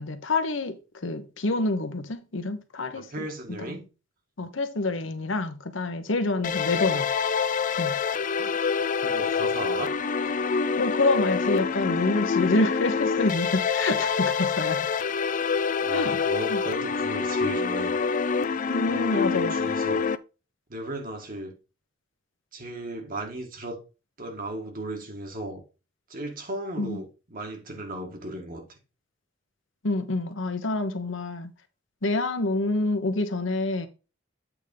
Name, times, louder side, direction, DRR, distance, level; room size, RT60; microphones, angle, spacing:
voice 1, 0.0-3.1 3.7-3.8 4.4-7.1 7.8-8.0 10.8-14.9 15.9-16.2 16.5-16.6 18.7-19.5 26.8-27.0 29.8-31.5 32.0-33.9, left 2 dB, 75° left, 1.1 m, -27 dB
voice 2, 2.9-3.9 8.3-8.5 9.0-9.9 15.8-18.0 18.9-20.0 20.7-21.6 22.5-23.8 24.2-25.6 26.1-28.8, right 1 dB, 45° right, 1.8 m, -36 dB
sound 1, 6.4-20.2, left 5 dB, 40° left, 0.4 m, -26 dB
8.3 x 3.6 x 5.3 m
head